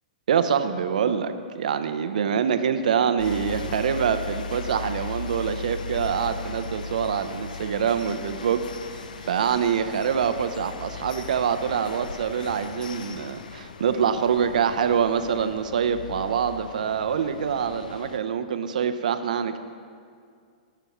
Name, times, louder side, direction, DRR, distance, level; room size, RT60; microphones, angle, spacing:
voice 1, 0.3-8.6 8.9-19.6, right 7 dB, 75° right, 10 dB, 0.6 m, -25 dB
sound 1, 3.2-18.2, left 4 dB, 80° left, 0.5 m, -38 dB
16.0 x 6.9 x 3.0 m, 2.2 s
hypercardioid pair, 120°, 4 cm